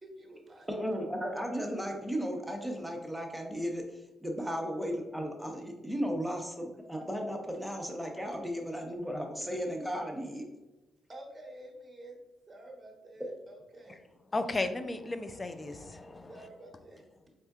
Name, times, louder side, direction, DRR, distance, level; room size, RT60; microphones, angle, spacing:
voice 1, 0.0-0.7 5.9-6.0 8.3-8.4 11.1-12.2 12.5-14.0 16.3-17.3, right 1 dB, 30° right, 1.0 m, -50 dB
voice 2, 0.7-10.4, equal, ahead, 0.8 m, -35 dB
voice 3, 14.3-16.3, left 2 dB, 30° left, 0.4 m, -34 dB
4.2 x 3.6 x 2.3 m
supercardioid pair, 65°, 0 cm